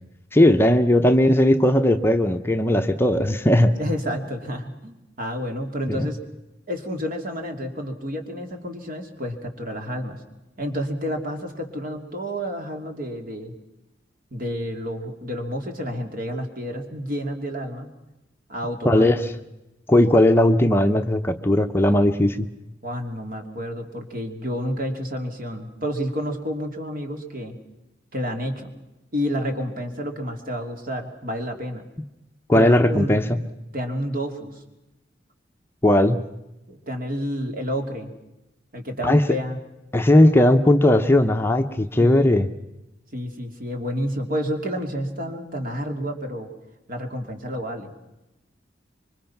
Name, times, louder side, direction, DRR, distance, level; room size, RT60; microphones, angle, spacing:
voice 1, 0.3-3.8 5.9-6.1 18.8-19.3 19.9-22.5 32.5-33.3 35.8-36.2 39.0-39.2 39.9-42.5, left 1 dB, 15° left, 6 dB, 0.8 m, -17 dB
voice 2, 3.7-6.2 6.7-10.2 10.6-13.5 14.3-17.9 18.5-19.2 22.8-27.6 28.1-28.7 29.1-31.9 32.5-33.2 33.7-34.6 36.7-38.1 38.7-39.6 42.0-42.4 43.1-46.5 46.9-47.9, equal, 50° right, 5 dB, 2.9 m, -30 dB
26.0 x 24.0 x 5.9 m, 0.95 s
head